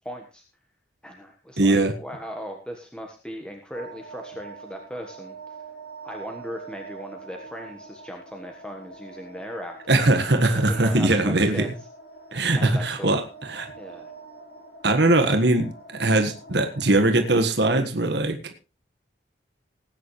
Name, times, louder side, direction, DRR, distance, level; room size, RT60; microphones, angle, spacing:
voice 1, 0.0-0.4 1.0-5.6 6.0-9.8 10.3-11.7 12.5-13.2 13.8-14.1, equal, 5° left, 3 dB, 1.4 m, -38 dB
voice 2, 1.6-1.9 9.9-11.7 12.3-13.7 14.8-18.5, right 2 dB, 65° right, 7 dB, 1.6 m, -21 dB
sound 1, 3.7-17.5, right 4 dB, 60° left, 3.0 m, -45 dB
19.0 x 9.5 x 3.2 m, 0.32 s
head